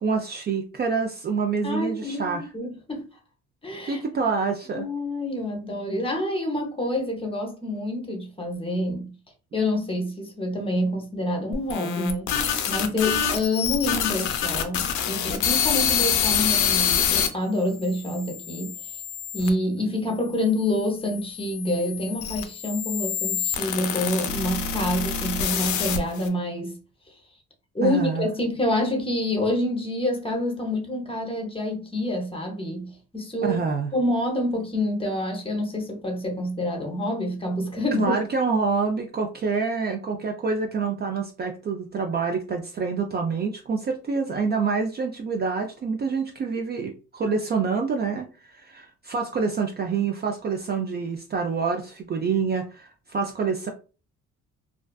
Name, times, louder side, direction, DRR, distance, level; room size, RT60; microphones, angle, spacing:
voice 1, 0.0-2.5 3.8-4.9 27.8-28.3 33.4-33.9 38.0-53.7, right 5 dB, 35° right, 0.4 m, -27 dB
voice 2, 1.6-3.1 3.6-4.0 4.7-9.1 9.5-12.3 12.7-18.9 19.3-26.8 27.7-33.6 33.9-38.1, left 1 dB, 20° left, 0.7 m, -27 dB
sound 1, 11.5-17.3 17.9-19.5 20.3-26.3, left 8 dB, 75° left, 0.5 m, -26 dB
2.4 x 2.3 x 2.2 m
cardioid pair, 90°, 30 cm